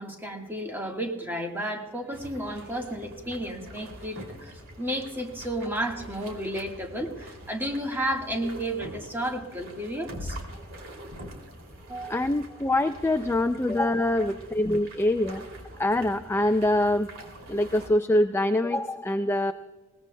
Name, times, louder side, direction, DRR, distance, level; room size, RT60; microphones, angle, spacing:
voice 1, 0.0-10.4 11.8-12.3 14.2-14.3, right 1 dB, 10° right, 1 dB, 1.5 m, -32 dB
sound 1, 2.1-17.9, right 1 dB, 65° right, 2.8 m, -44 dB
voice 2, 12.1-15.4 15.8-17.1 17.5-19.5, left 1 dB, 10° left, 7 dB, 0.3 m, -24 dB
21.5 x 19.5 x 2.2 m, 1.3 s
head